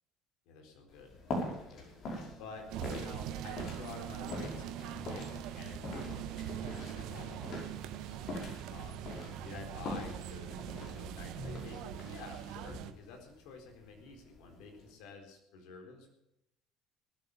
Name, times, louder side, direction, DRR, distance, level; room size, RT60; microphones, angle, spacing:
voice 1, 0.5-1.9 2.4-8.2 8.7-9.1 9.4-16.1, left 4 dB, 70° left, 3 dB, 4.2 m, -50 dB
sound 1, 0.9-14.9, left 1 dB, 55° left, 5.6 m, -44 dB
sound 2, 2.7-12.9, right 11 dB, 65° right, 1.1 m, -42 dB
19.0 x 8.7 x 7.2 m, 0.82 s
hypercardioid pair, 65°, 0 cm